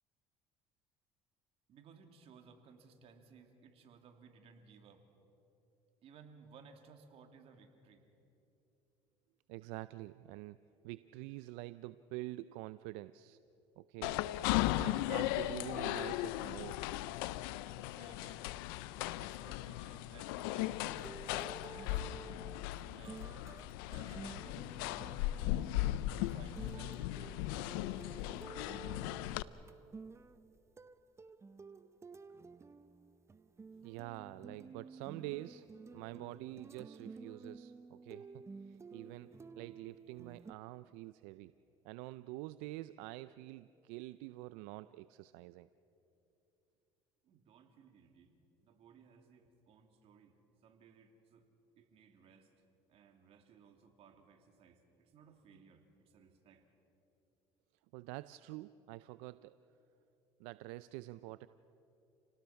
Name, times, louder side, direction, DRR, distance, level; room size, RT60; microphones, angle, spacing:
voice 1, 1.7-5.0 6.0-8.1 17.8-18.5 19.2-21.2 21.7-22.5 22.9-23.3 23.9-25.7 26.2-28.4 47.2-48.3 48.6-50.4 50.6-51.4 51.8-52.5 52.9-56.6, right 6 dB, 60° right, 5 dB, 2.6 m, -60 dB
voice 2, 9.5-10.6 10.8-13.4 13.8-14.3 14.8-16.8 33.8-35.7 35.9-39.3 39.6-41.5 41.8-45.7 57.9-59.6 60.4-61.5, right 18 dB, 85° right, 15 dB, 0.4 m, -47 dB
sound 1, 14.0-29.4, left 15 dB, 90° left, 0.5 m, -37 dB
sound 2, 20.8-40.5, right 4 dB, 25° right, 0.8 m, -52 dB
28.5 x 18.5 x 5.8 m, 2.9 s
supercardioid pair, 90°, 12 cm